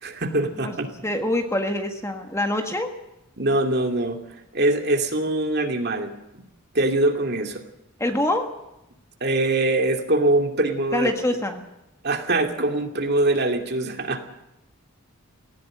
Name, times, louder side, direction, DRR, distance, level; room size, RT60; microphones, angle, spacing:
voice 1, 0.0-0.9 3.4-4.2 4.5-6.1 6.7-7.6 9.2-11.1 12.0-14.2, right 2 dB, 45° right, 4 dB, 2.5 m, -23 dB
voice 2, 1.0-2.9 8.0-8.5 10.9-11.6, left 1 dB, 15° left, 5 dB, 1.6 m, -25 dB
18.0 x 17.0 x 9.1 m, 0.90 s
head